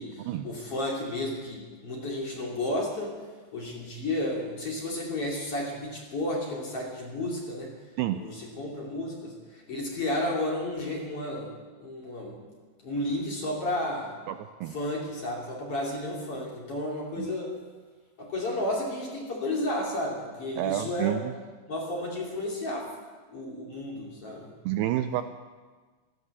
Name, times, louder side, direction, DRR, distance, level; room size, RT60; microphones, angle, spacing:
voice 1, 0.0-3.2 3.5-7.7 8.1-11.5 11.8-12.4 12.8-14.1 14.7-17.5 18.2-21.2 21.7-22.9 23.3-24.5, left 1 dB, 40° left, -3 dB, 3.1 m, -32 dB
voice 2, 14.3-14.8 17.2-17.3 20.6-21.3 24.7-25.2, right 12 dB, 80° right, 9 dB, 2.4 m, -29 dB
14.5 x 13.0 x 7.1 m, 1.4 s
omnidirectional pair, 5.0 m